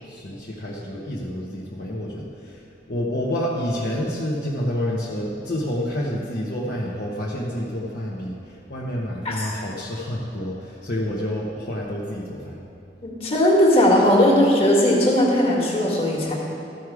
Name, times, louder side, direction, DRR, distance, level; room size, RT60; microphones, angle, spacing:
voice 1, 0.1-2.6 2.9-12.6, equal, 55° left, -6 dB, 0.9 m, -28 dB
voice 2, 13.0-16.3, left 1 dB, 35° left, -4 dB, 1.8 m, -18 dB
13.5 x 4.8 x 4.8 m, 2.9 s
head